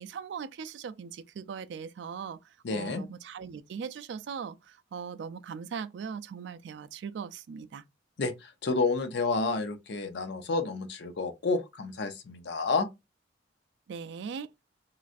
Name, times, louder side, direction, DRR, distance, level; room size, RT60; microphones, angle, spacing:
voice 1, 0.0-2.4 2.7-7.8 13.9-14.5, right 6 dB, 70° right, 0.3 m, -39 dB
voice 2, 2.6-3.0 8.2-12.9, left 3 dB, 65° left, 0.6 m, -30 dB
3.1 x 2.4 x 2.5 m
head